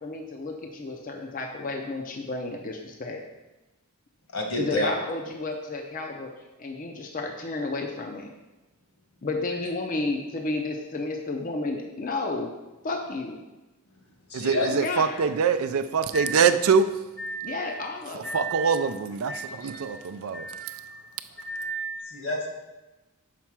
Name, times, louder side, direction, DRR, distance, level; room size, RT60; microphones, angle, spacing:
voice 1, 0.0-3.2 4.5-6.3 6.6-8.3 9.2-12.5 12.8-13.4 14.6-15.2 17.4-18.4, left 3 dB, 35° left, 3 dB, 0.5 m, -32 dB
voice 2, 4.3-4.9 14.3-14.7 16.1-16.3 17.2-17.7 18.2-18.7 19.3-19.9 20.3-20.9 21.4-22.5, equal, 70° left, 0 dB, 1.4 m, -31 dB
voice 3, 14.3-16.9 18.1-20.8, right 6 dB, 70° right, 11 dB, 0.4 m, -24 dB
5.8 x 4.3 x 6.0 m, 1.1 s
head